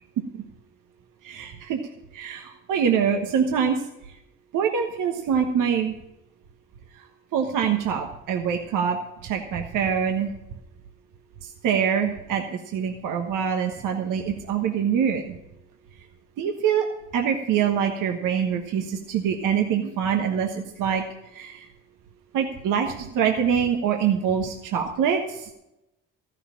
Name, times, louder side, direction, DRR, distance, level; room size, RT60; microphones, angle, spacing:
voice 1, 1.2-1.8 2.1-3.8 4.5-5.9 7.3-10.3 11.4-15.4 16.4-16.9 17.1-21.0 21.3-21.7 22.3-25.5, right 7 dB, 65° right, 3 dB, 1.3 m, -25 dB
14.5 x 6.6 x 8.5 m, 0.89 s
hypercardioid pair, 55°, 34 cm